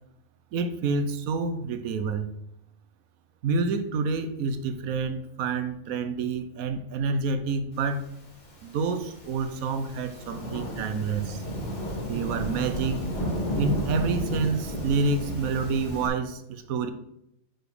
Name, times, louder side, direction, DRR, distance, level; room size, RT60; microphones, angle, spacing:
voice 1, 0.5-2.3 3.4-8.0 8.6-11.4 12.1-13.0 13.6-16.9, right 4 dB, 90° right, 9 dB, 1.2 m, -28 dB
Thunderstorm / Rain, 8.4-16.1, right 1 dB, 60° left, 2.2 m, -32 dB
6.0 x 5.0 x 4.9 m, 0.81 s
omnidirectional pair, 1.4 m